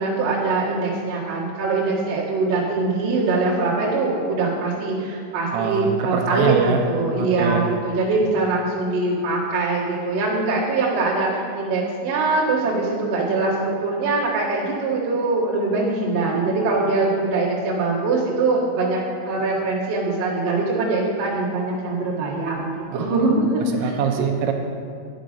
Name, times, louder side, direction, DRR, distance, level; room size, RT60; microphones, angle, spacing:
voice 1, 0.0-24.0, right 3 dB, 50° right, -6 dB, 1.5 m, -22 dB
voice 2, 5.5-6.8 7.2-7.6 22.9-23.0 23.8-24.5, right 7 dB, 80° right, 3 dB, 2.7 m, -23 dB
10.5 x 5.1 x 5.1 m, 2.4 s
omnidirectional pair, 4.8 m